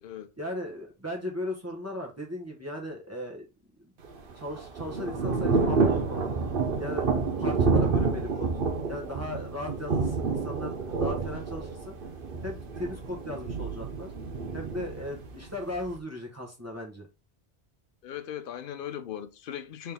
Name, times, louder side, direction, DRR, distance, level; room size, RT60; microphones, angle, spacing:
voice 1, 0.4-3.4 3.8-3.9 4.3-6.3 6.8-7.1 7.4-8.5 8.9-11.9 12.4-14.1 14.5-17.1, left 1 dB, 15° right, 1.0 m, -37 dB
Thunder / Rain, 4.0-16.0, right 4 dB, 55° right, 1.0 m, -29 dB
voice 2, 18.0-19.9, left 10 dB, 60° left, 0.7 m, -38 dB
4.2 x 3.4 x 3.5 m
omnidirectional pair, 1.1 m